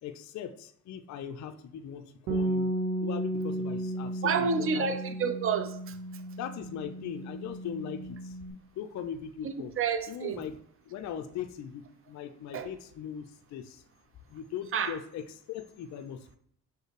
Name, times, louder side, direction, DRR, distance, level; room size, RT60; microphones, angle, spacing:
voice 1, 0.0-2.7 3.0-4.9 6.4-8.3 8.8-9.7 10.1-10.6 10.9-13.8 14.3-16.4, left 8 dB, 40° left, 7 dB, 0.5 m, -40 dB
Bass guitar, 2.3-8.5, right 1 dB, 70° right, 0.9 m, -34 dB
voice 2, 4.2-6.0 9.4-10.4 12.5-12.7 14.7-14.9, right 5 dB, 30° right, 9 dB, 0.6 m, -29 dB
6.3 x 2.2 x 3.2 m, 0.67 s
hypercardioid pair, 50°, 44 cm